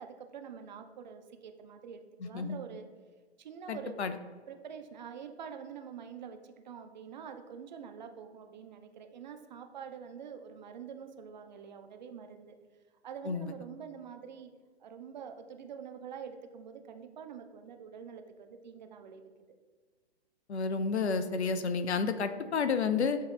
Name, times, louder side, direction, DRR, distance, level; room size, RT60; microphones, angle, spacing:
voice 1, 0.0-2.9 3.4-4.0 4.5-12.6 13.0-14.5 14.8-19.3, right 7 dB, 45° right, 6 dB, 0.4 m, -46 dB
voice 2, 2.2-2.6 3.7-4.2 13.3-13.5 20.5-23.2, left 5 dB, 75° left, 10 dB, 0.5 m, -31 dB
7.3 x 2.7 x 2.3 m, 1.5 s
figure-of-eight pair, 115°, 33 cm